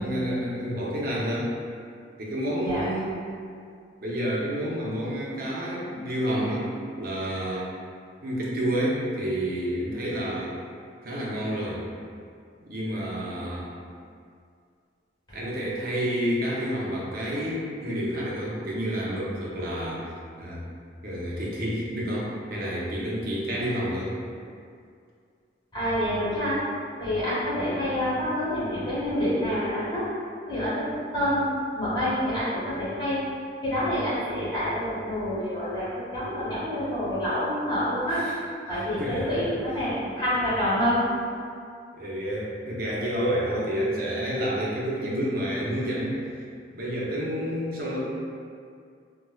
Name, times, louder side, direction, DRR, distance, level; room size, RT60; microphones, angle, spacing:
voice 1, 0.0-1.5 2.2-3.2 4.0-6.7 6.9-7.7 8.2-10.5 11.0-11.8 12.6-13.7 15.3-20.0 20.4-20.6 21.0-24.1 38.1-38.4 39.0-39.4 41.9-46.2 46.8-48.0, equal, 55° right, -5 dB, 0.7 m, -29 dB
voice 2, 25.7-26.6 27.0-30.0 30.5-30.9 31.1-31.5 31.7-33.2 33.6-38.2 38.7-41.0, equal, 25° left, -12 dB, 1.4 m, -27 dB
4.3 x 2.2 x 2.3 m, 2.3 s
head